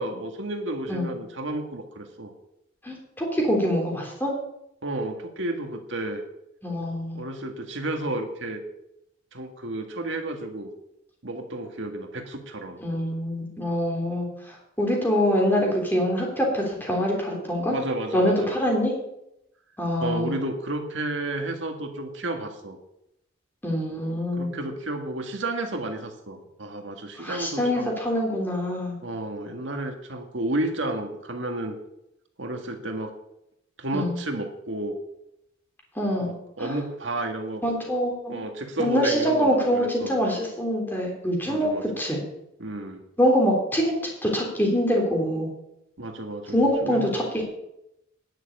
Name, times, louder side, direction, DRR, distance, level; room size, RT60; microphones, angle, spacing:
voice 1, 0.0-2.3 4.8-6.2 7.1-8.6 9.3-10.7 11.2-12.8 17.7-18.6 20.0-22.8 24.3-27.9 29.0-31.8 32.4-33.1 33.8-35.0 36.2-37.6 38.3-40.2 41.5-41.8 42.6-43.0 46.0-47.2, right 2 dB, 75° right, 5 dB, 1.8 m, -31 dB
voice 2, 2.8-4.3 6.6-7.2 12.8-17.7 18.1-18.9 19.8-20.3 23.6-24.5 27.2-29.0 33.9-34.2 35.9-36.3 36.6-36.7 37.6-38.4 38.8-42.2 43.2-44.0 44.2-45.5 46.5-47.4, equal, 10° left, -1 dB, 3.4 m, -24 dB
10.5 x 7.0 x 8.4 m, 0.83 s
head